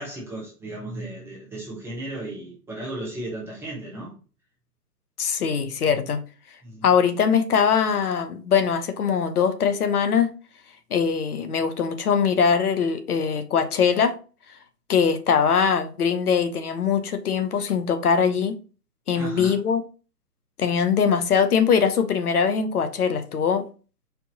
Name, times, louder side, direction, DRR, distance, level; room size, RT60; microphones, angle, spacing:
voice 1, 0.0-4.1 6.6-6.8 19.2-19.5, right 1 dB, 5° right, 0.7 m, -35 dB
voice 2, 5.2-6.2 6.8-10.3 10.9-14.2 14.9-18.5 19.1-19.8 20.6-23.7, left 6 dB, 65° left, 0.9 m, -22 dB
4.5 x 2.8 x 4.0 m
hypercardioid pair, 140°, 48 cm